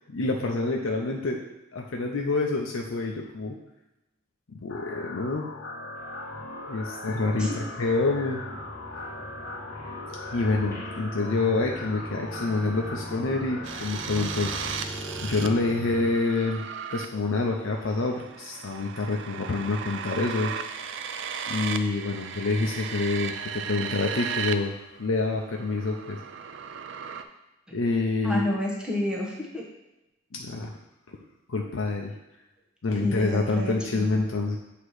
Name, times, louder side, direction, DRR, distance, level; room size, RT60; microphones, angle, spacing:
voice 1, 0.1-1.4 1.7-3.6 4.5-5.5 6.7-8.4 10.3-15.0 15.2-20.5 21.5-24.7 25.0-26.2 27.7-28.5 30.3-30.7 31.5-32.1 32.8-34.6, left 3 dB, 75° left, 0 dB, 0.6 m, -27 dB
sound 1, 4.7-14.7, left 3 dB, 55° left, 0.9 m, -40 dB
sound 2, 6.0-16.1, equal, 15° left, 1.5 m, -40 dB
sound 3, 13.6-24.5 24.8-27.2, right 7 dB, 60° right, 0.4 m, -36 dB
voice 2, 28.2-29.6 33.0-34.1, left 1 dB, 5° right, -3 dB, 1.1 m, -30 dB
8.1 x 2.9 x 4.8 m, 0.96 s
head